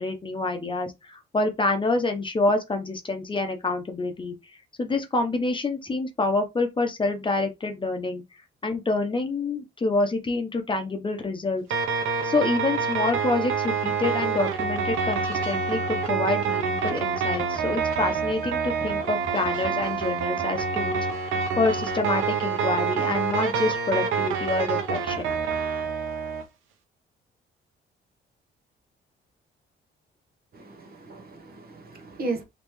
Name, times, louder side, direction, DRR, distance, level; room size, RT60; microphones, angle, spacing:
voice 1, 0.0-4.3 4.8-8.2 8.6-11.6 12.2-25.3, left 3 dB, 25° left, 0.9 m, -27 dB
sound 1, 11.7-26.4, right 5 dB, 85° right, 0.8 m, -27 dB
voice 2, 30.5-32.4, right 3 dB, 50° right, 1.2 m, -35 dB
3.3 x 2.9 x 3.1 m
cardioid pair, 90°, 20 cm